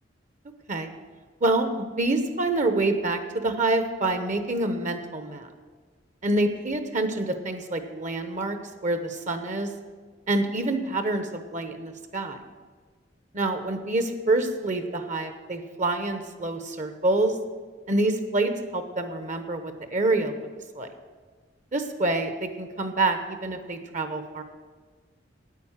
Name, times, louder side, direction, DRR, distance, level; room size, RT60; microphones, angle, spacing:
voice 1, 2.0-5.5 6.2-8.6 8.8-9.7 10.3-12.4 13.3-17.3 17.9-20.5 20.7-20.9 21.7-24.4, right 2 dB, 40° right, 9 dB, 0.9 m, -26 dB
9.5 x 8.9 x 7.3 m, 1.5 s
head